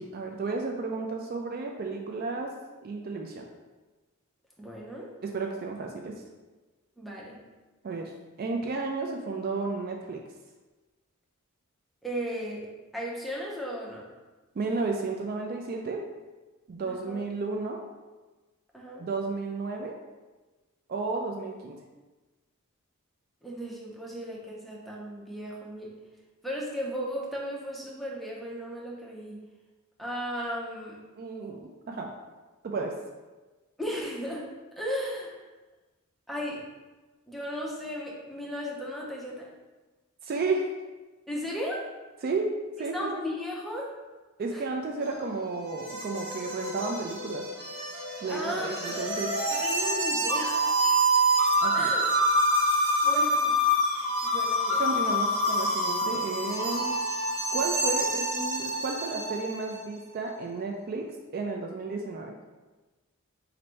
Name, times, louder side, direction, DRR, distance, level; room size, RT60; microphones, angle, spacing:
voice 1, 0.0-2.5 2.8-3.4 5.2-6.2 7.8-8.1 8.4-10.2 14.6-16.0 16.7-17.8 19.0-20.0 20.9-21.8 31.2-32.1 32.6-32.9 40.2-40.7 42.2-43.2 44.4-47.4 48.2-49.3 51.6-51.9 54.8-57.0 57.5-61.1 61.3-62.4, right 3 dB, 45° right, 2 dB, 0.3 m, -32 dB
voice 2, 4.6-5.1 7.0-7.4 12.0-12.7 12.9-14.0 16.8-17.2 18.7-19.1 23.4-25.9 26.4-29.4 30.0-31.0 33.8-34.5 34.8-35.4 36.3-36.6 37.3-39.5 41.3-41.9 42.9-43.9 44.5-44.6 48.3-49.0 49.6-50.6 51.7-52.1 53.0-53.5 54.0-54.9, equal, ahead, -4 dB, 0.6 m, -35 dB
sound 1, 45.0-59.6, equal, 90° right, 1.3 m, -27 dB
3.1 x 2.6 x 4.3 m, 1.2 s
head